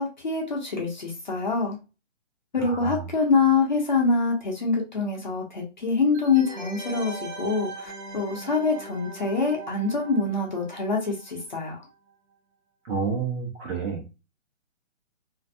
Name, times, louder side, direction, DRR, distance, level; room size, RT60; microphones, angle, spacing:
voice 1, 0.0-1.8 2.5-11.8, left 4 dB, 40° left, 0 dB, 0.5 m, -25 dB
voice 2, 2.6-3.0 12.9-14.2, right 5 dB, 90° right, -1 dB, 0.9 m, -30 dB
sound 1, 6.1-11.6 11.9-12.0, right 3 dB, 40° right, 0.8 m, -40 dB
2.5 x 2.1 x 2.5 m, 0.29 s
hypercardioid pair, 170°, 37 cm